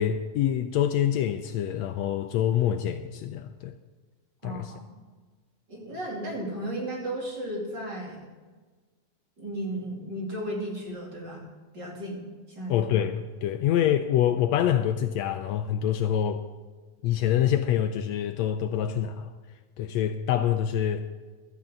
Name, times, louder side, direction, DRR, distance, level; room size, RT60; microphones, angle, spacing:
voice 1, 0.0-3.7 4.4-4.7 12.7-16.5 17.0-19.3 19.8-21.1, left 10 dB, 80° left, 1.7 m, -26 dB
voice 2, 4.4-4.8 5.7-8.2 9.4-11.4 11.7-12.2 12.5-12.8, right 1 dB, 35° right, 3.3 m, -34 dB
16.0 x 13.0 x 3.8 m
omnidirectional pair, 3.4 m